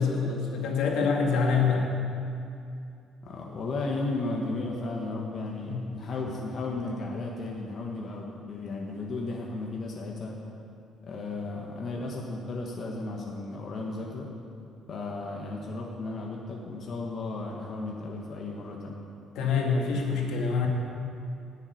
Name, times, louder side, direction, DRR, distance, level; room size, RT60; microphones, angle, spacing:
voice 1, 0.0-1.8 5.7-5.9 19.4-20.7, left 5 dB, 75° left, 0 dB, 2.1 m, -26 dB
voice 2, 3.2-10.4 11.0-14.3 14.9-18.9, left 2 dB, 40° left, -2 dB, 1.3 m, -34 dB
10.5 x 7.3 x 9.6 m, 2.5 s
cardioid pair, 155°, 0 cm